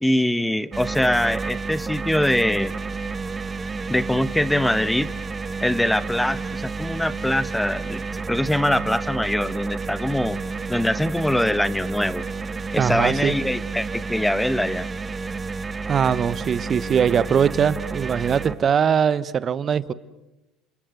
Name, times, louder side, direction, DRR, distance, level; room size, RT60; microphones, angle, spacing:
voice 1, 0.0-2.7 3.9-5.1 5.6-8.0 8.3-10.4 10.7-12.2 12.7-14.9, left 1 dB, 5° left, 15 dB, 1.1 m, -23 dB
sound 1, 0.7-18.6, right 4 dB, 25° right, 1.4 m, -30 dB
voice 2, 12.8-13.3 15.9-19.9, right 7 dB, 40° right, 16 dB, 1.1 m, -21 dB
29.0 x 26.0 x 7.9 m, 0.97 s
supercardioid pair, 90°, 0 cm